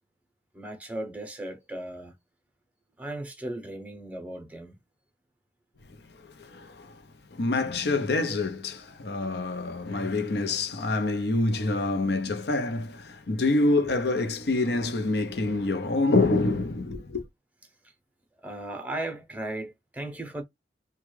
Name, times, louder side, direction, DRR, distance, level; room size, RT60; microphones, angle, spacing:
voice 1, 0.5-2.1 3.0-4.8 17.8-17.9 18.4-20.4, right 1 dB, 10° right, 0.7 m, -36 dB
voice 2, 6.1-7.0 7.3-17.2, left 2 dB, 70° left, 0.7 m, -26 dB
3.5 x 2.3 x 3.1 m
head